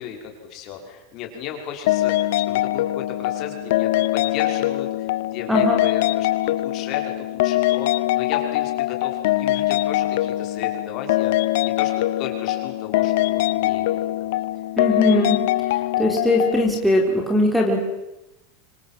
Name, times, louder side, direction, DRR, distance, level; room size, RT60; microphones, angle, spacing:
voice 1, 0.0-14.3, left 8 dB, 40° left, 3 dB, 5.9 m, -35 dB
sound 1, 1.9-16.6, left 16 dB, 70° left, 1.0 m, -22 dB
voice 2, 5.5-5.8 14.8-15.4 15.7-17.8, left 1 dB, ahead, 2 dB, 4.2 m, -20 dB
26.5 x 25.5 x 7.9 m, 0.93 s
supercardioid pair, 155°, 0 cm